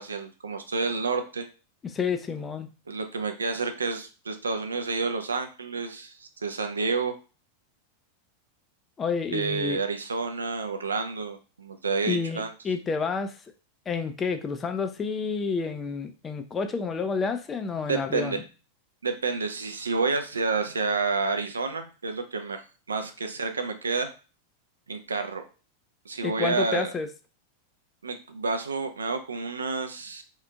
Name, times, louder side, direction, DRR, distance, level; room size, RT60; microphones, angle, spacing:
voice 1, 0.0-1.4 2.9-7.1 9.3-12.5 17.9-18.4 19.0-22.6 22.9-24.1 24.9-25.4 26.1-26.9 28.0-30.2, right 4 dB, 75° right, 7 dB, 0.4 m, -29 dB
voice 2, 1.8-2.7 9.0-9.8 12.1-13.4 13.9-18.4 26.2-27.1, left 5 dB, 20° left, 7 dB, 0.3 m, -29 dB
2.8 x 2.4 x 2.3 m, 0.34 s
figure-of-eight pair, 90°, 0 cm